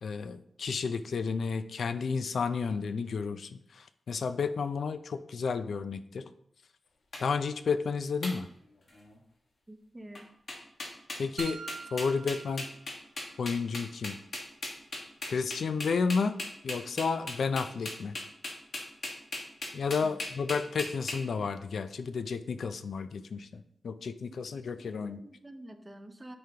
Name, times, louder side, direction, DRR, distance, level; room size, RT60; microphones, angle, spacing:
voice 1, 0.0-6.2 7.2-8.5 11.2-11.6 11.9-12.7 13.4-14.1 15.2-16.4 16.6-18.2 19.7-25.2, left 5 dB, 65° left, 11 dB, 0.4 m, -32 dB
sound 1, 7.1-7.2 8.2-8.3 8.9-9.2 10.1-10.2 10.5-21.2, left 2 dB, 50° left, 1.4 m, -38 dB
voice 2, 9.7-10.3 20.0-20.2 24.8-26.4, right 1 dB, 15° right, 6 dB, 0.6 m, -48 dB
sound 2, 11.4-13.4, right 5 dB, 65° right, 0.6 m, -45 dB
9.3 x 5.1 x 2.8 m, 0.73 s
wide cardioid pair, 170°, 0 cm